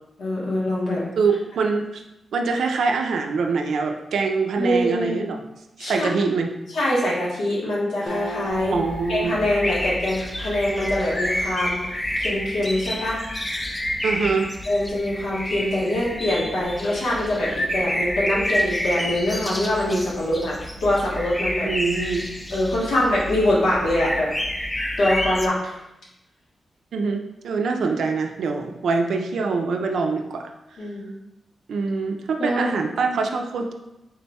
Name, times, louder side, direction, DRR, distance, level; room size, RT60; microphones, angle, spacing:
voice 1, 0.2-1.1 4.6-5.2 5.8-6.1 6.7-8.7 9.1-11.8 12.2-13.3 14.7-21.7 22.5-24.3 25.0-25.7 30.8-31.1 32.4-32.7, left 1 dB, 90° left, -5 dB, 1.1 m, -24 dB
voice 2, 1.2-2.0 2.3-5.4 5.8-6.5 8.7-9.4 14.0-14.5 21.6-22.3 26.9-30.4 31.7-33.7, right 4 dB, 80° right, 4 dB, 0.4 m, -24 dB
Acoustic guitar, 8.1-11.6, equal, 45° left, 0.9 m, -38 dB
sound 1, 8.5-25.5, left 1 dB, 15° left, 0.4 m, -29 dB
3.7 x 2.3 x 4.1 m, 0.92 s
wide cardioid pair, 100°, 0 cm